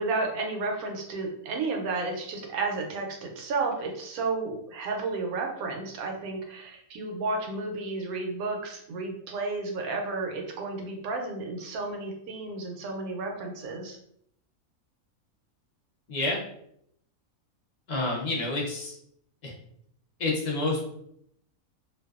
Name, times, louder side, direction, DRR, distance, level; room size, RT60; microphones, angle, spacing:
voice 1, 0.0-14.0, right 3 dB, 85° right, 2 dB, 1.1 m, -32 dB
voice 2, 16.1-16.4 17.9-19.0 19.4-19.5 20.2-20.9, left 2 dB, 55° left, -3 dB, 0.5 m, -28 dB
2.5 x 2.2 x 2.3 m, 0.72 s
omnidirectional pair, 1.5 m